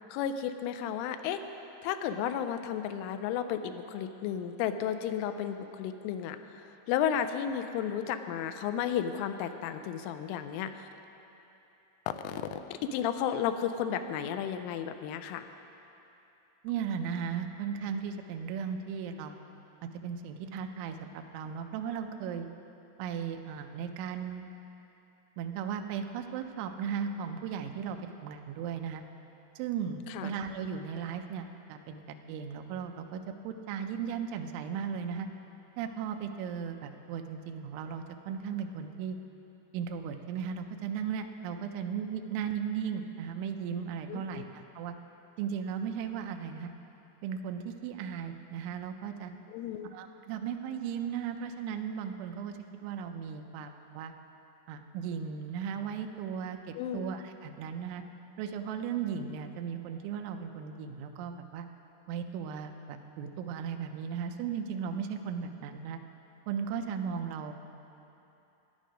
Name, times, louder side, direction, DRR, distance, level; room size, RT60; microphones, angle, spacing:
voice 1, 0.1-1.4 1.8-10.9 12.1-15.4 30.1-30.3 44.1-44.4 49.5-49.9 56.8-57.0, left 9 dB, 85° left, 9 dB, 3.0 m, -33 dB
voice 2, 16.6-19.4 19.8-22.5 23.0-24.5 25.4-28.0 28.2-29.0 29.6-35.3 35.8-39.2 39.7-44.9 45.4-46.7 47.2-49.3 49.9-54.1 54.7-58.0 58.4-61.7 62.1-66.0 66.5-67.5, right 7 dB, 80° right, 5 dB, 2.8 m, -36 dB
14.0 x 10.5 x 5.1 m, 2.9 s
omnidirectional pair, 5.9 m